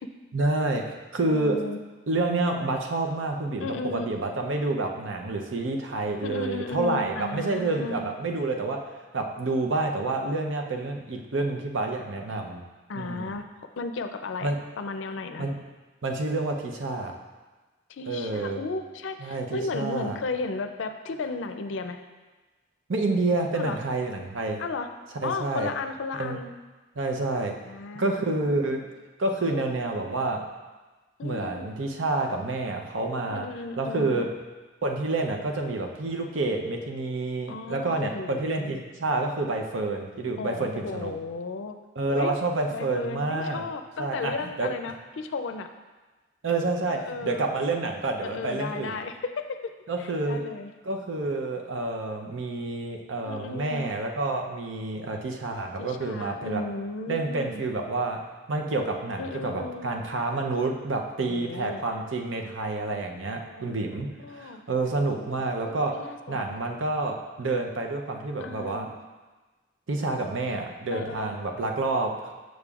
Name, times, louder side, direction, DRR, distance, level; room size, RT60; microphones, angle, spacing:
voice 1, 0.3-1.6 2.1-12.6 13.0-13.3 14.4-14.6 15.4-15.6 16.0-17.1 18.1-18.6 19.2-20.2 22.9-24.6 25.2-25.7 26.2-26.4 27.0-27.6 27.9-28.9 29.2-30.5 31.2-33.5 33.8-34.3 34.8-41.1 42.0-43.6 44.0-44.7 46.4-48.9 49.9-50.4 50.8-56.6 57.1-58.2 58.5-66.0 66.3-68.9 69.9-72.3, right 2 dB, 85° right, 3 dB, 0.7 m, -28 dB
voice 2, 1.3-1.8 3.6-4.1 6.2-8.1 12.9-13.4 13.8-15.5 17.9-22.0 23.5-23.8 24.6-24.9 25.2-26.5 27.6-28.8 29.4-29.6 29.9-30.1 31.2-31.8 33.3-34.3 37.5-38.8 40.4-41.7 42.1-42.3 42.7-45.7 46.9-47.5 48.2-49.7 50.0-50.7 53.2-53.9 55.8-57.6 59.2-59.9 61.3-61.8 63.2-63.7 64.0-64.6 65.2-66.6 68.4-69.0 70.9-71.4, left 3 dB, 80° left, 7 dB, 0.4 m, -35 dB
6.8 x 6.3 x 2.4 m, 1.2 s
head